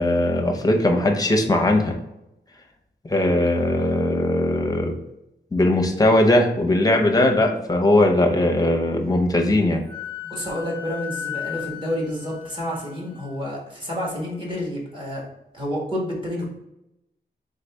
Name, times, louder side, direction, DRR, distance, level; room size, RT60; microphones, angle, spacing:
voice 1, 0.0-2.0 3.0-4.9 5.5-9.8, left 1 dB, 20° left, 3 dB, 0.7 m, -19 dB
Wind instrument woodwind instrument, 9.9-13.3, left 10 dB, 60° right, 0.7 m, -35 dB
voice 2, 10.2-15.2 15.5-16.4, equal, 30° right, -4 dB, 1.7 m, -29 dB
4.0 x 3.8 x 3.5 m, 0.88 s
wide cardioid pair, 145°, 18 cm